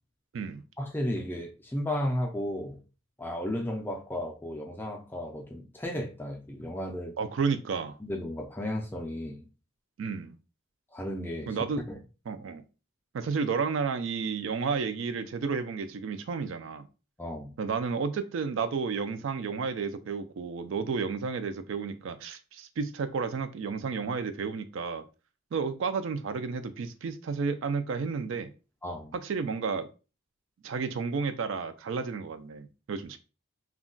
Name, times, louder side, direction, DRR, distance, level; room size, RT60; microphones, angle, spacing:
voice 1, 0.8-2.8 3.2-7.1 8.0-9.5 10.9-11.6 11.9-12.0 17.2-17.5 28.8-29.1, left 1 dB, 10° left, 0.4 m, -34 dB
voice 2, 7.2-8.0 10.0-10.4 11.5-11.8 12.3-12.6 13.1-16.9 17.6-25.0 25.5-28.5 29.1-29.9 30.6-33.2, right 5 dB, 65° right, 0.3 m, -32 dB
2.3 x 2.1 x 3.7 m
head